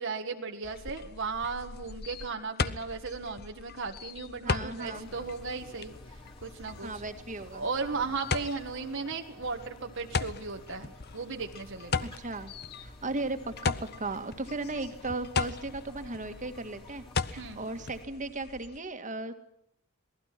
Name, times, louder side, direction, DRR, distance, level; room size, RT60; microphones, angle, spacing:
voice 1, 0.0-6.9 7.5-12.1 17.4-17.6, right 4 dB, 60° right, 3 dB, 1.6 m, -36 dB
sound 1, 0.6-18.8, left 5 dB, 50° left, 0.9 m, -38 dB
voice 2, 4.4-5.1 6.8-7.7 12.0-17.0 17.3-19.3, right 2 dB, 35° right, 7 dB, 2.0 m, -36 dB
sound 2, 4.9-18.0, equal, 25° left, 3.8 m, -52 dB
27.5 x 19.0 x 6.0 m, 0.76 s
head